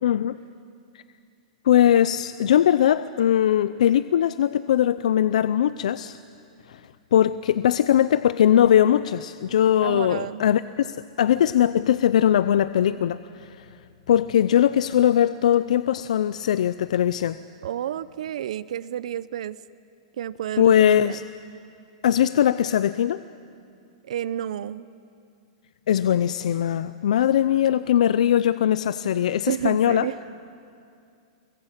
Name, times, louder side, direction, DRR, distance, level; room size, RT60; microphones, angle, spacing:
voice 1, 0.0-0.4 1.6-6.2 6.7-6.8 7.1-13.7 14.1-17.4 20.6-21.2 22.0-23.2 25.9-30.1, left 10 dB, 75° left, 14 dB, 0.6 m, -20 dB
voice 2, 9.8-10.4 17.6-19.6 20.2-21.2 24.1-24.9 29.5-30.2, right 11 dB, 70° right, 17 dB, 0.6 m, -30 dB
24.0 x 22.0 x 9.0 m, 2.4 s
supercardioid pair, 165°, 4 cm